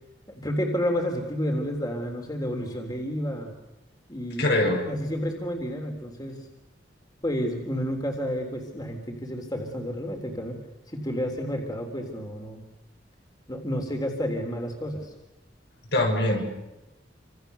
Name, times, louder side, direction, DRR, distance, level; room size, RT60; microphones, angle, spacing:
voice 1, 0.3-3.5 4.1-6.5 7.2-10.6 10.9-12.6 13.5-15.1, equal, 20° left, 3 dB, 3.6 m, -30 dB
voice 2, 4.4-4.9 15.9-16.4, left 1 dB, 65° left, 2 dB, 7.0 m, -23 dB
29.0 x 26.5 x 7.0 m, 0.99 s
head